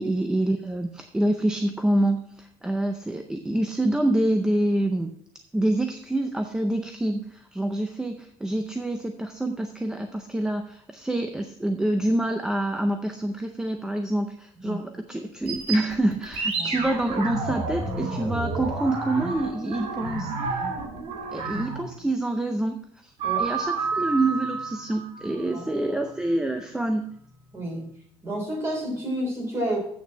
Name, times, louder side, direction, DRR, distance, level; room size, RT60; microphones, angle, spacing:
voice 1, 0.0-5.1 5.5-20.6 21.3-23.1 23.4-27.1, right 1 dB, 5° right, 6 dB, 0.5 m, -26 dB
sound 1, 15.4-22.0 23.2-25.8, right 4 dB, 55° right, 2.5 m, -30 dB
voice 2, 16.6-16.9 23.2-23.5 25.5-25.7 27.5-27.9 28.2-29.8, right 1 dB, 20° right, -1 dB, 3.5 m, -30 dB
8.2 x 6.7 x 7.0 m, 0.68 s
cardioid pair, 175°, 12 cm